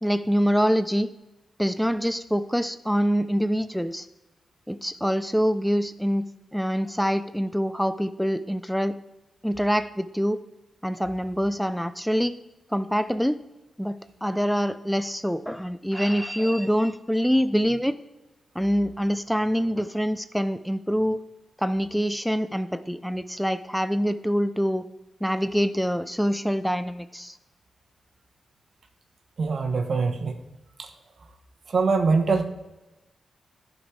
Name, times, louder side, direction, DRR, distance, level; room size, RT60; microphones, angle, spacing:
voice 1, 0.0-1.1 1.6-4.1 4.7-6.2 6.5-8.9 9.4-10.4 10.8-12.4 12.7-13.4 13.8-17.9 18.6-21.2 21.6-24.8 25.2-27.4, equal, ahead, 13 dB, 0.4 m, -25 dB
voice 2, 29.4-30.3 30.8-30.9 31.7-32.4, right 4 dB, 65° right, 6 dB, 0.9 m, -23 dB
11.0 x 4.1 x 4.7 m, 1.0 s
cardioid pair, 55°, 0 cm